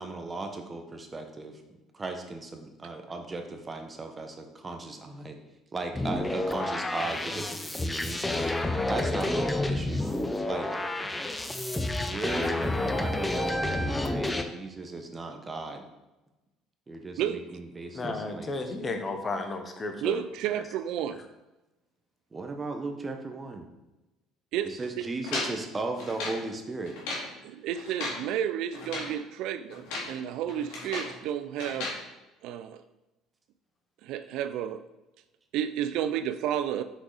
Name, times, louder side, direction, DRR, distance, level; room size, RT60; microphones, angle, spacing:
voice 1, 0.0-1.6 1.9-5.4 5.7-8.4 8.9-10.1 10.5-10.7 12.0-15.8 16.9-18.8 22.3-23.7 24.6-27.0, right 3 dB, 20° right, 5 dB, 1.0 m, -37 dB
sound 1, 5.9-14.4, left 2 dB, 10° left, 0.6 m, -29 dB
voice 2, 17.9-20.2, left 3 dB, 25° left, 6 dB, 1.0 m, -33 dB
voice 3, 20.0-21.2 24.5-24.7 25.0-25.1 27.4-31.9 32.4-32.8 34.0-34.8 35.5-36.8, right 10 dB, 75° right, 11 dB, 0.4 m, -31 dB
sound 2, 25.3-26.4 26.9-27.3 27.8-28.2 28.7-29.2 29.7-30.2 30.5-31.2 31.6-32.0, left 2 dB, 90° left, 2.3 m, -35 dB
6.2 x 4.8 x 4.0 m, 1.0 s
cardioid pair, 110°, 0 cm